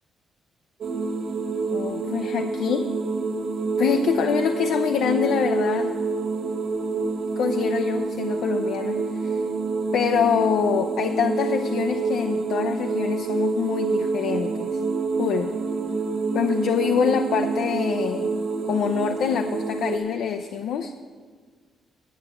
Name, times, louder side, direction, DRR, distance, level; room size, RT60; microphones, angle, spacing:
sound 1, 0.8-20.0, right 4 dB, 45° right, 0.9 m, -27 dB
voice 1, 1.7-2.9 3.8-5.9 7.4-9.4 9.9-14.8 15.2-15.5 16.3-18.3 18.6-20.9, left 7 dB, 70° left, 5 dB, 0.5 m, -25 dB
10.5 x 7.6 x 7.5 m, 1.5 s
cardioid pair, 175°, 0 cm